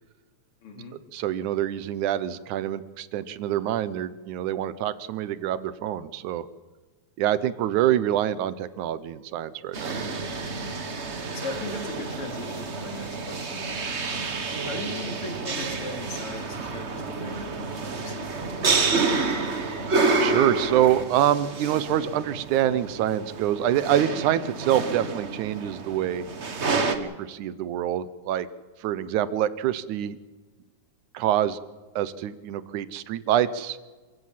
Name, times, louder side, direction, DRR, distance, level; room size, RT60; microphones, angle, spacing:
voice 1, 0.6-1.0 11.3-14.0 14.6-19.3, left 2 dB, 50° left, 4 dB, 3.5 m, -39 dB
voice 2, 1.1-6.5 7.2-10.0 20.2-26.3 26.9-28.5 28.8-30.2 31.1-31.6 32.0-33.8, right 11 dB, 85° right, 15 dB, 2.3 m, -26 dB
sound 1, 9.7-26.9, right 3 dB, 45° right, 0.9 m, -29 dB
26.5 x 15.5 x 7.5 m, 1.3 s
omnidirectional pair, 3.4 m